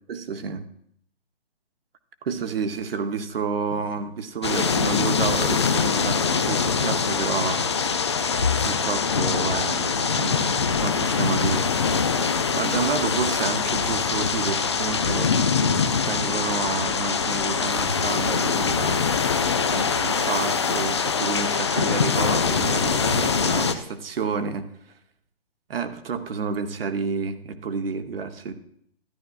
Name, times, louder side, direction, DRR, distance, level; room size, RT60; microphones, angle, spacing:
voice 1, 0.1-0.6 2.2-7.7 8.6-11.7 12.3-15.4 16.1-19.0 19.7-24.7 25.7-28.5, right 5 dB, 65° right, 9 dB, 1.0 m, -30 dB
sound 1, 4.4-23.7, left 5 dB, 30° left, 0.4 m, -23 dB
12.5 x 10.5 x 2.4 m, 0.68 s
hypercardioid pair, 150°, 31 cm